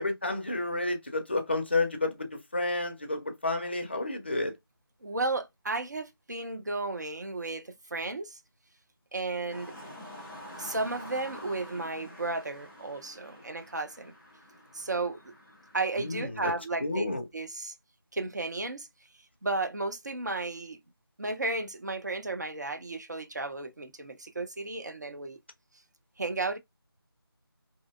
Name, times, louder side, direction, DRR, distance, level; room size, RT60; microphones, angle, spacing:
voice 1, 0.0-4.6 16.0-16.5 16.8-17.2, left 2 dB, 25° left, 0.5 m, -30 dB
voice 2, 5.0-8.4 9.1-9.7 10.6-14.1 14.7-15.2 15.7-17.7 18.1-18.9 19.4-20.8 21.2-25.4 26.2-26.6, right 3 dB, 45° right, 0.5 m, -33 dB
sound 1, 9.5-16.2, equal, 5° right, 0.9 m, -47 dB
3.3 x 2.7 x 2.2 m
figure-of-eight pair, 165°, 13 cm